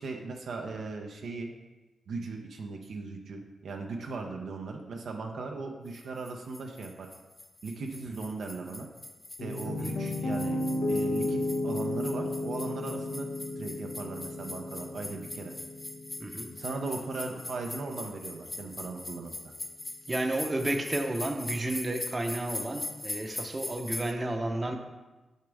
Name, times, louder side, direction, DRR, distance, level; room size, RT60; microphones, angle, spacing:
voice 1, 0.0-1.5 2.1-7.1 7.6-8.9 9.4-10.6 10.9-13.3 13.6-15.5 16.6-19.3, right 3 dB, 75° right, 2 dB, 0.6 m, -38 dB
sound 1, 5.9-24.1, left 2 dB, 25° left, 0.6 m, -42 dB
Piano, 9.4-17.5, left 1 dB, 80° left, 0.8 m, -34 dB
voice 2, 16.2-16.5 20.1-24.8, right 1 dB, 30° right, 5 dB, 0.7 m, -32 dB
6.5 x 5.0 x 3.5 m, 1.1 s
cardioid pair, 60°, 0 cm